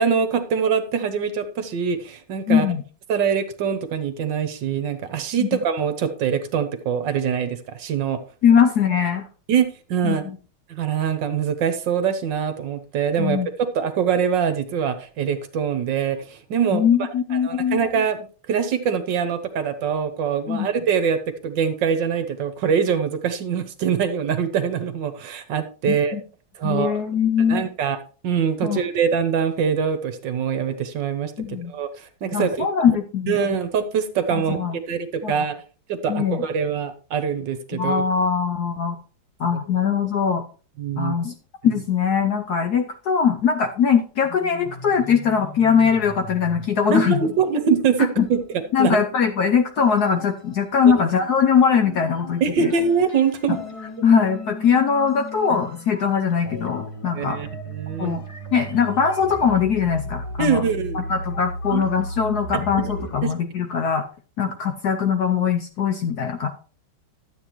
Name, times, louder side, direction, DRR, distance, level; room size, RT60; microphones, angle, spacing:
voice 1, 0.0-2.6 3.1-8.2 9.5-10.2 10.7-13.4 13.7-26.2 26.6-27.0 27.4-28.0 28.2-31.3 31.7-32.7 33.3-34.6 34.9-35.5 35.9-38.0 40.8-41.2 46.9-48.4 48.8-49.0 52.4-53.6 57.1-58.2 60.4-61.1 61.7-61.8 62.5-62.6 63.2-63.3, right 7 dB, 65° right, 10 dB, 1.5 m, -23 dB
voice 2, 2.5-2.8 5.4-5.6 8.4-9.2 10.0-10.4 13.2-13.5 16.7-17.8 20.5-20.7 25.8-26.2 26.6-27.6 28.6-28.8 31.4-31.7 32.3-33.4 34.3-34.8 35.2-35.4 36.1-36.5 37.7-39.0 39.4-40.4 41.0-41.3 41.6-47.2 48.2-48.3 48.7-52.7 53.5-53.6 54.0-57.4 58.0-58.2 58.5-60.6 60.9-64.1 64.4-66.5, left 7 dB, 65° left, 5 dB, 1.0 m, -21 dB
sound 1, 44.2-50.9 51.2-63.2, left 1 dB, 25° left, 0.7 m, -36 dB
12.0 x 8.1 x 3.0 m, 0.38 s
omnidirectional pair, 2.3 m